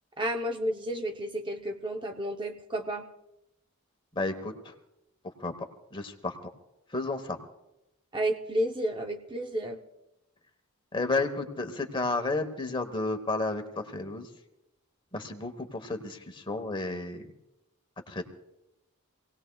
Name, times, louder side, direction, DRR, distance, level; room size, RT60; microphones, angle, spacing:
voice 1, 0.2-3.0 8.1-9.8, equal, 20° right, 3 dB, 0.7 m, -31 dB
voice 2, 4.1-4.5 5.4-5.5 5.9-6.3 6.9-7.4 10.9-14.3 15.1-17.2 18.1-18.2, left 3 dB, 20° left, 6 dB, 1.1 m, -31 dB
26.5 x 18.0 x 2.3 m, 0.90 s
head